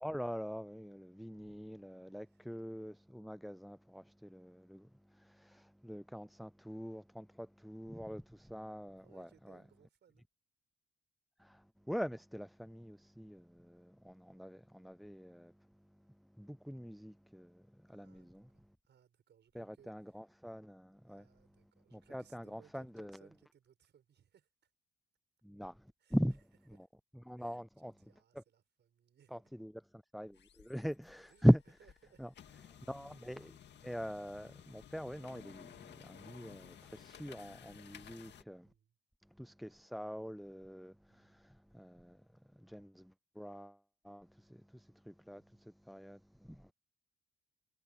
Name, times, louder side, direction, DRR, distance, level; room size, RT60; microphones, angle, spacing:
voice 1, 0.0-9.6 11.4-15.5 16.4-18.4 19.6-21.2 21.9-23.2 25.4-26.4 26.8-26.9 27.2-27.9 28.4-28.5 29.3-31.6 32.2-32.3 32.7-38.7 39.4-42.2 42.5-43.8 44.0-46.7, equal, ahead, 0.3 m, -40 dB
voice 2, 9.0-10.3 17.9-20.3 21.1-24.7 26.0-26.2 27.3-29.4 31.3-32.2 38.6-39.0 41.1-41.4 45.3-45.6, right 9 dB, 60° right, 6.4 m, -67 dB
sound 1, 30.3-38.4, left 9 dB, 60° left, 2.1 m, -56 dB
cardioid pair, 90°, 20 cm